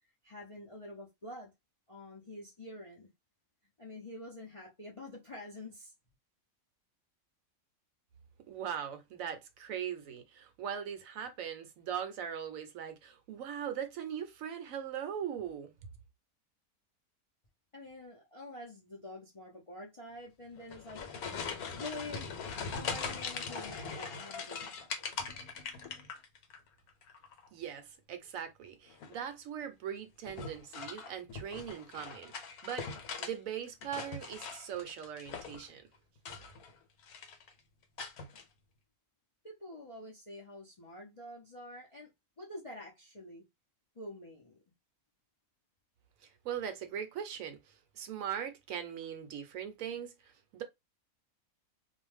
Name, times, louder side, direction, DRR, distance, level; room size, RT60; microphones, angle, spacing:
voice 1, 0.2-1.5 1.9-3.1 3.8-5.9 17.7-21.0 21.8-22.3 22.7-25.1 39.4-42.1 42.4-43.4 43.9-44.6, left 1 dB, 45° left, 0.4 m, -47 dB
voice 2, 8.5-15.7 27.5-32.9 33.2-35.8 46.2-50.6, right 8 dB, 70° right, 0.9 m, -40 dB
sound 1, 20.6-26.6 26.9-27.5 28.9-29.3 30.3-33.3 33.7-35.7 36.2-36.8 37.0-37.5 38.0-38.4, left 5 dB, 85° left, 1.2 m, -41 dB
2.5 x 2.1 x 3.1 m
omnidirectional pair, 1.5 m